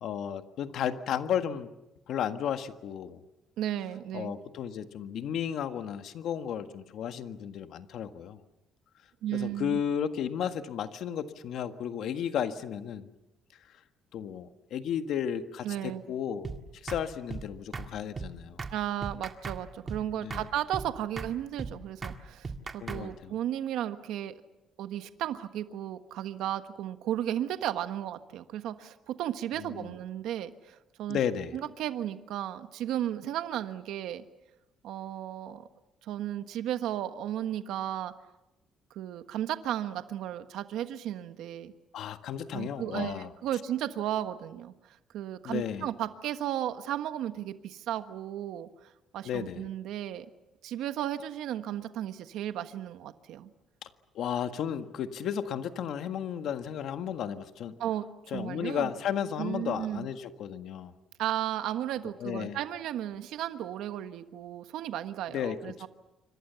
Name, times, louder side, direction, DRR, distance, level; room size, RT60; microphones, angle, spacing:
voice 1, 0.0-1.7 2.1-3.2 4.1-8.4 9.3-13.1 14.1-16.5 16.7-18.6 20.2-20.4 22.8-23.3 29.6-29.9 31.1-31.5 41.9-43.3 45.4-45.9 49.2-49.6 53.8-53.9 54.1-57.8 58.3-60.9 62.2-62.6 65.3-65.7, left 9 dB, 60° left, 8 dB, 1.6 m, -33 dB
voice 2, 3.6-4.3 9.2-9.8 15.6-16.0 18.7-24.4 24.8-31.2 31.5-34.2 34.8-35.7 36.0-38.1 38.9-41.7 42.5-50.3 50.6-53.5 57.8-58.0 58.3-58.9 59.4-60.1 61.2-65.9, right 11 dB, 75° right, 9 dB, 1.4 m, -34 dB
sound 1, 16.4-16.6 16.9-17.0 17.3-17.5 17.7-17.9 18.2-18.3 18.6-18.7 19.0-19.6 19.9-20.0 20.3-20.5 20.7-20.9 21.2-21.3 21.6-21.7 22.0-22.2 22.4-23.0, right 4 dB, 25° right, 1.8 m, -37 dB
27.5 x 25.0 x 7.0 m, 0.94 s
cardioid pair, 160°, 0 cm